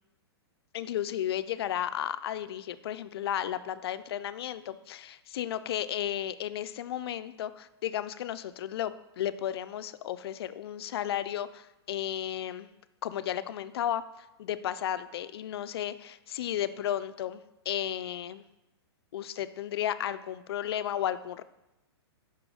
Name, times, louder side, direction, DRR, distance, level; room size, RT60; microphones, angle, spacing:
voice 1, 0.7-12.7 13.0-18.4 19.1-21.4, left 11 dB, 65° left, 13 dB, 0.4 m, -34 dB
5.4 x 3.8 x 5.0 m, 0.92 s
hypercardioid pair, 150°, 14 cm